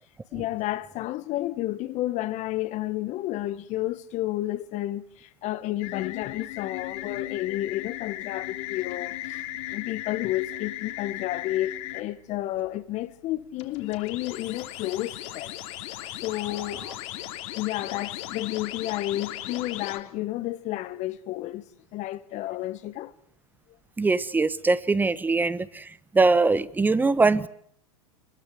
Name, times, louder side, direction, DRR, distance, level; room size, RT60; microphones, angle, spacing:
voice 1, 0.3-9.4 9.7-15.6 16.2-16.9 17.5-21.6 21.9-23.1, left 15 dB, 40° left, 1.4 m, -31 dB
sound 1, 5.8-12.0 13.6-20.0, left 15 dB, 55° left, 3.0 m, -37 dB
voice 2, 24.0-25.8 26.1-27.5, right 3 dB, 10° right, 1.1 m, -22 dB
24.5 x 21.5 x 7.9 m
hypercardioid pair, 110°, 19 cm